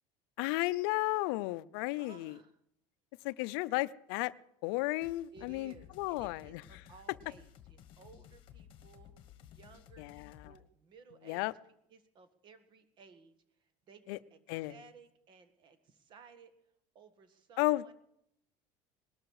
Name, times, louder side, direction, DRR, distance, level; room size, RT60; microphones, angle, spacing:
voice 1, 0.4-2.4 3.2-4.3 4.6-6.6 10.0-10.5 11.3-11.5 14.1-14.2 14.5-14.7 17.6-17.9, left 20 dB, 80° left, 16 dB, 0.5 m, -33 dB
voice 2, 2.0-2.6 5.3-9.2 9.5-11.5 11.9-13.3 13.6-16.5 16.9-17.9, right 5 dB, 40° right, 10 dB, 1.7 m, -58 dB
sound 1, 5.0-10.6, left 10 dB, 45° left, 1.3 m, -56 dB
20.0 x 12.5 x 4.8 m, 0.75 s
cardioid pair, 145°, 12 cm